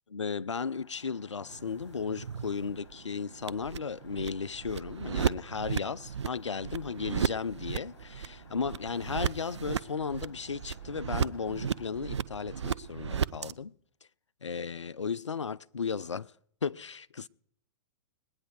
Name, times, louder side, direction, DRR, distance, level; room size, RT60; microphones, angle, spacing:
voice 1, 0.1-13.8 14.4-16.3 16.6-17.3, left 5 dB, 85° left, 0.4 m, -35 dB
sound 1, 0.6-11.9, left 6 dB, 60° left, 2.3 m, -58 dB
sound 2, 1.5-13.5, right 8 dB, 75° right, 0.5 m, -35 dB
21.0 x 9.4 x 4.6 m
figure-of-eight pair, 110°, 15 cm